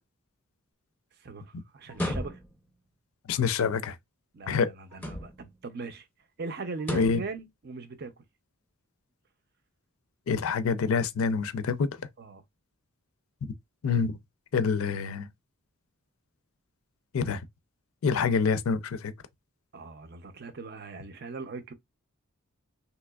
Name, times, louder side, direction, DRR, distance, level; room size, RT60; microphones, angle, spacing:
voice 1, 1.2-2.4 4.3-6.1 6.4-8.2 12.2-12.4 18.1-18.2 19.7-21.7, right 3 dB, 45° right, 0.5 m, -40 dB
sound 1, 1.9-2.7 4.9-5.6 6.8-7.3, equal, 5° left, 0.6 m, -35 dB
voice 2, 3.3-4.0 4.5-4.7 6.9-7.2 10.3-12.0 13.8-14.2 14.5-15.3 17.1-17.4 18.0-19.1, left 5 dB, 70° left, 0.4 m, -26 dB
3.3 x 2.9 x 2.2 m
head